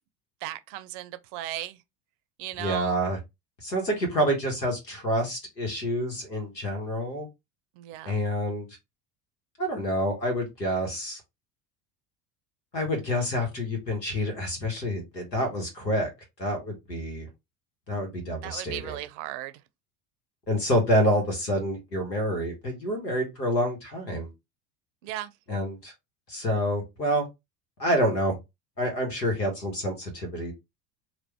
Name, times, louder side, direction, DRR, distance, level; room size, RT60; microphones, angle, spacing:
voice 1, 0.4-1.8 2.4-3.0 7.8-8.1 18.4-19.5 25.0-25.3, right 14 dB, 50° right, 0.6 m, -36 dB
voice 2, 2.6-3.2 3.6-7.3 8.0-8.7 9.6-11.2 12.7-16.1 16.4-17.3 17.9-19.0 20.5-24.3 25.5-25.9 26.3-27.3 27.8-28.3 28.8-30.5, equal, 90° left, 1.4 m, -27 dB
3.0 x 2.4 x 3.4 m
figure-of-eight pair, 70°, 48 cm